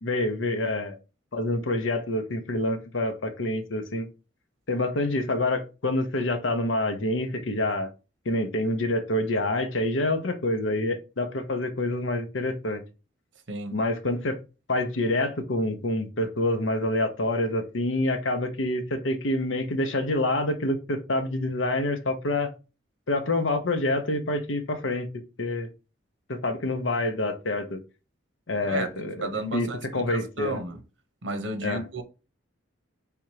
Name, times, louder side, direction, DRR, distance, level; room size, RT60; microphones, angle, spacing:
voice 1, 0.0-0.9 1.3-4.1 4.7-7.9 8.3-12.8 13.7-14.4 14.7-22.5 23.1-25.1 25.4-25.7 26.3-27.8 28.5-30.6 31.6-31.9, left 1 dB, 75° left, 0.8 m, -27 dB
voice 2, 29.2-29.8 30.1-30.8 31.2-32.0, right 2 dB, 70° right, 0.9 m, -32 dB
3.5 x 2.9 x 4.6 m
head